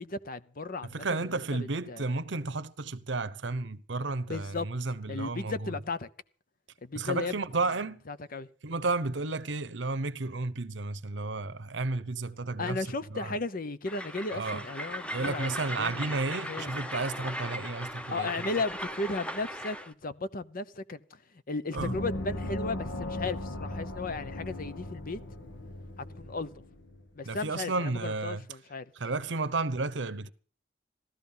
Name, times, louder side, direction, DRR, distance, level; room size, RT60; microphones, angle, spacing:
voice 1, 0.0-2.1 4.3-4.7 5.1-6.1 6.8-7.3 8.1-8.5 12.6-16.1 16.5-16.7 18.1-21.2 21.5-25.2 26.1-26.5 27.1-28.8, left 3 dB, 50° left, 0.9 m, -35 dB
voice 2, 0.8-5.8 6.9-8.0 8.6-13.4 14.3-14.7 15.1-18.5 21.7-22.0 27.2-28.4 28.9-30.3, right 3 dB, 70° right, 0.9 m, -32 dB
Train, 13.9-19.9, equal, 5° left, 0.9 m, -38 dB
Gong, 21.8-27.0, left 1 dB, 75° left, 1.7 m, -37 dB
15.5 x 13.0 x 5.7 m
head